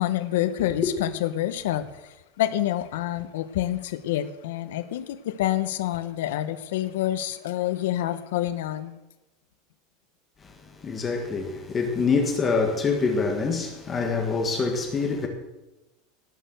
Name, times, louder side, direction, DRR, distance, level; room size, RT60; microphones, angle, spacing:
voice 1, 0.0-9.0, left 13 dB, 85° left, 0.9 m, -27 dB
voice 2, 10.4-15.3, left 4 dB, 15° left, 1.5 m, -25 dB
18.5 x 6.7 x 7.9 m
supercardioid pair, 175°, 0 cm